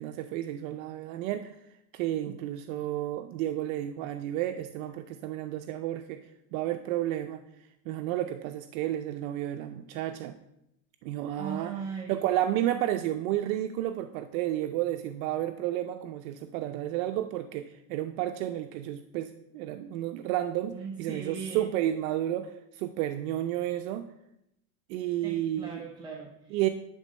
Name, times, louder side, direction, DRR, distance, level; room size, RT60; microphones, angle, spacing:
voice 1, 0.0-1.6 1.9-6.2 6.5-7.4 7.9-10.3 11.0-11.8 12.1-24.1 24.9-25.8 26.5-26.7, right 13 dB, 70° right, 7 dB, 0.6 m, -31 dB
voice 2, 11.4-12.2 20.7-21.7 25.2-26.7, right 6 dB, 10° right, 0 dB, 0.5 m, -39 dB
10.5 x 3.8 x 5.2 m, 0.82 s
supercardioid pair, 145°, 42 cm